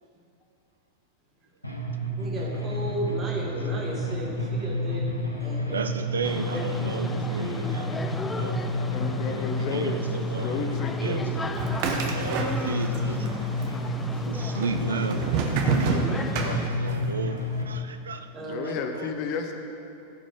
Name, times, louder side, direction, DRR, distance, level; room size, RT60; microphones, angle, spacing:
sound 1, 1.6-17.6, left 1 dB, 85° left, 1.0 m, -30 dB
voice 1, 2.2-5.1 5.4-5.8 18.3-18.7, right 2 dB, 25° right, -2 dB, 2.1 m, -34 dB
voice 2, 5.7-8.9 9.2-11.6 12.0-13.4 14.2-15.4 15.6-18.3 18.6-19.1, right 4 dB, 70° right, 8 dB, 0.4 m, -35 dB
sound 2, 6.2-16.7, left 3 dB, 10° left, 0.4 m, -36 dB
voice 3, 8.9-10.0 10.3-11.2 13.7-14.0 18.5-19.5, left 5 dB, 45° left, 5 dB, 0.8 m, -32 dB
sound 3, 11.5-13.0 13.3-14.0 14.6-17.1, right 5 dB, 45° right, 1.1 m, -28 dB
15.0 x 5.1 x 5.6 m, 2.7 s
figure-of-eight pair, 90°, 0 cm